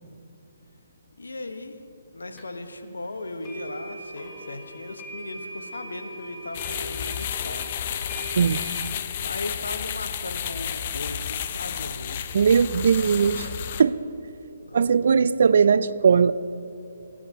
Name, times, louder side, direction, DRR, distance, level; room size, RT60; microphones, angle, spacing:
voice 1, 1.2-1.8 2.1-7.7 9.2-12.2 12.9-13.5 14.6-16.1, left 2 dB, 80° left, 8 dB, 0.9 m, -38 dB
sound 1, 2.4-2.5 3.4-8.8, right 1 dB, 20° left, 1.8 m, -40 dB
sound 2, 6.5-13.8, left 9 dB, 40° left, 0.5 m, -31 dB
voice 2, 12.3-13.5 13.8-14.0 14.7-16.3, right 6 dB, 60° right, 16 dB, 0.4 m, -19 dB
22.0 x 8.6 x 2.8 m, 2.8 s
figure-of-eight pair, 140°, 0 cm